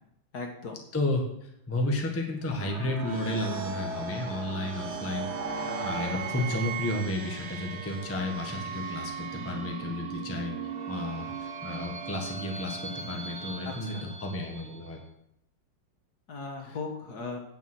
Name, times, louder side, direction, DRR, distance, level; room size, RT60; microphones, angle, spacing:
voice 1, 0.3-0.8 6.1-6.2 13.6-14.1 16.3-17.4, left 4 dB, 50° left, 3 dB, 1.8 m, -38 dB
voice 2, 0.9-10.5 10.9-11.3 11.6-15.0, left 2 dB, 10° left, 1 dB, 1.1 m, -32 dB
sound 1, 2.4-14.9, right 5 dB, 40° right, 1.0 m, -37 dB
9.9 x 7.2 x 6.2 m, 0.78 s
omnidirectional pair, 2.3 m